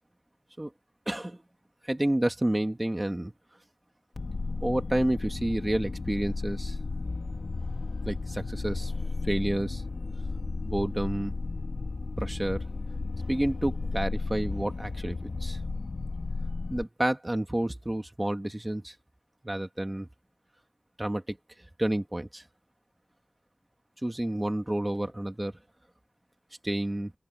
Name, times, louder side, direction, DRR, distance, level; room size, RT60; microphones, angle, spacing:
voice 1, 1.1-1.4 1.8-3.3 4.6-6.8 8.0-8.9 9.2-9.8 10.6-11.3 12.2-12.6 13.3-15.6 16.7-18.9 19.4-20.1 21.0-21.4 21.8-22.4 24.0-25.5 26.6-27.1, right 1 dB, 25° right, 2.3 m, -29 dB
sound 1, 4.2-16.8, left 3 dB, 90° left, 2.6 m, -34 dB
open air
wide cardioid pair, 50°, 0 cm